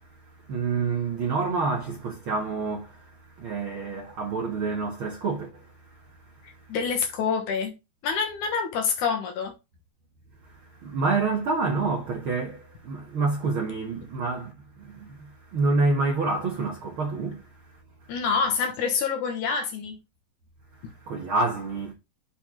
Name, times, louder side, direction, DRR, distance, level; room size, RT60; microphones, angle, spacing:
voice 1, 0.0-6.1 10.4-17.6 20.8-21.9, right 3 dB, 60° right, 1.4 m, -28 dB
voice 2, 6.7-7.8 8.0-9.5 18.1-20.0, left 5 dB, 65° left, 2.5 m, -26 dB
8.1 x 4.4 x 3.7 m
omnidirectional pair, 4.3 m